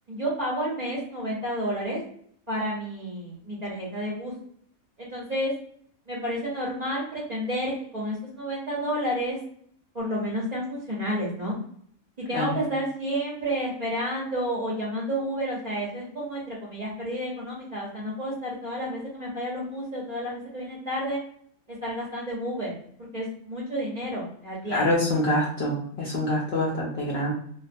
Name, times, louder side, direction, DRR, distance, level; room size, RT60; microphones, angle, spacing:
voice 1, 0.1-2.0 2.5-4.3 5.0-5.5 6.1-9.4 9.9-11.6 12.3-21.2 21.8-22.7 23.1-24.9, equal, 40° right, -5 dB, 0.6 m, -30 dB
voice 2, 24.7-27.3, left 1 dB, 65° left, -3 dB, 0.6 m, -25 dB
2.4 x 2.3 x 2.5 m, 0.62 s
omnidirectional pair, 1.5 m